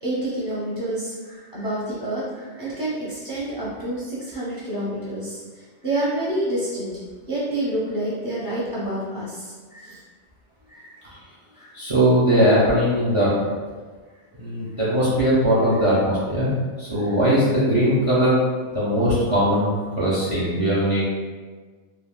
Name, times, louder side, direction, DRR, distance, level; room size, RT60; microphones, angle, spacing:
voice 1, 0.0-5.4 5.8-6.9 7.3-10.0 10.7-10.9 11.5-11.7 16.9-17.1 20.3-20.5, right 1 dB, 25° left, -8 dB, 0.5 m, -28 dB
voice 2, 11.7-13.3 14.4-16.5 16.8-18.4 18.7-21.0, equal, 40° right, -8 dB, 0.5 m, -20 dB
3.3 x 2.4 x 2.3 m, 1.4 s
omnidirectional pair, 1.2 m